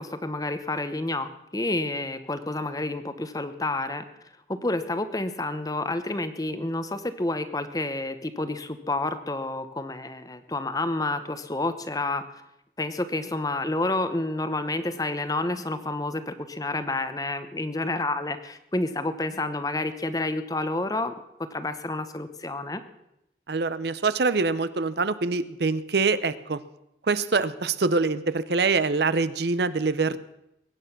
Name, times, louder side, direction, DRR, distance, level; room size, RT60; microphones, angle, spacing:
voice 1, 0.0-4.0 4.5-12.2 12.8-21.1 21.5-22.8, left 2 dB, 20° left, 11 dB, 0.9 m, -29 dB
voice 2, 23.5-26.6 27.1-30.2, right 4 dB, 65° right, 15 dB, 0.7 m, -24 dB
21.5 x 9.2 x 5.9 m, 0.85 s
head